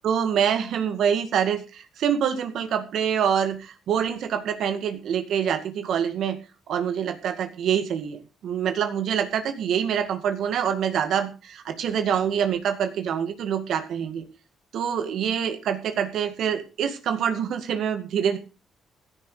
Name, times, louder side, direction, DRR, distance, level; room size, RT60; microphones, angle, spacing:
voice 1, 0.0-6.4 6.7-14.3 14.7-18.4, right 8 dB, 75° right, 8 dB, 2.0 m, -25 dB
16.0 x 10.5 x 5.0 m, 0.33 s
cardioid pair, 90°, 0 cm